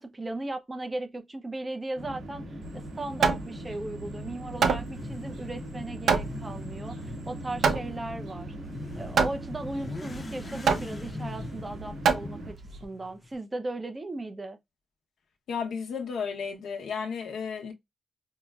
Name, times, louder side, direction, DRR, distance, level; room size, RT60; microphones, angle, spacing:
voice 1, 0.0-2.4 2.7-8.5 9.0-12.5 12.8-14.6, right 2 dB, 15° right, 0.5 m, -37 dB
sound 1, 2.0-12.5, equal, 45° right, 1.9 m, -40 dB
Hammer, 2.6-12.8, right 5 dB, 70° right, 0.7 m, -29 dB
Motorcycle / Accelerating revving vroom, 4.5-13.3, left 2 dB, 25° left, 0.6 m, -44 dB
voice 2, 15.5-17.7, left 6 dB, 90° left, 0.9 m, -33 dB
5.4 x 2.1 x 2.3 m
wide cardioid pair, 160°, 0 cm